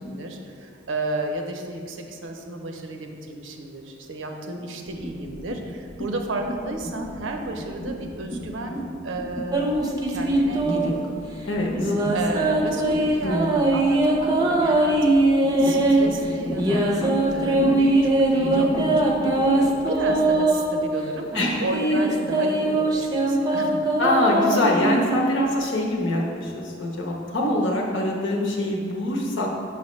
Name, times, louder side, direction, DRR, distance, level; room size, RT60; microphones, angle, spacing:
voice 1, 0.0-9.8 10.1-11.0 12.1-15.1 15.6-17.9 18.3-21.3 21.6-23.8, right 2 dB, 80° right, 3 dB, 0.6 m, -32 dB
sound 1, 4.9-20.4, equal, 25° left, 0.4 m, -35 dB
sound 2, 9.5-11.1 11.7-16.1 16.6-20.7 21.3-25.6, right 2 dB, 20° right, 0.6 m, -21 dB
voice 2, 11.5-11.9 13.2-13.6 17.5-17.7 21.3-21.7 21.9-22.0 24.0-29.5, left 1 dB, 70° left, -1 dB, 1.0 m, -24 dB
5.8 x 5.6 x 3.1 m, 2.3 s
head